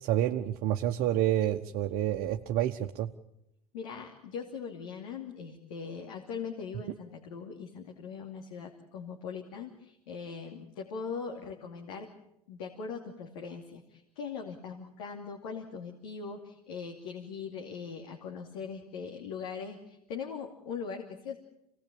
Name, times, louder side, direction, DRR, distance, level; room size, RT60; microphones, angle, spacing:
voice 1, 0.0-3.1, right 12 dB, 55° right, 4 dB, 1.1 m, -28 dB
voice 2, 3.7-12.1 12.5-21.4, left 6 dB, 70° left, 1 dB, 2.8 m, -40 dB
26.5 x 18.5 x 8.7 m, 0.83 s
hypercardioid pair, 75°, 19 cm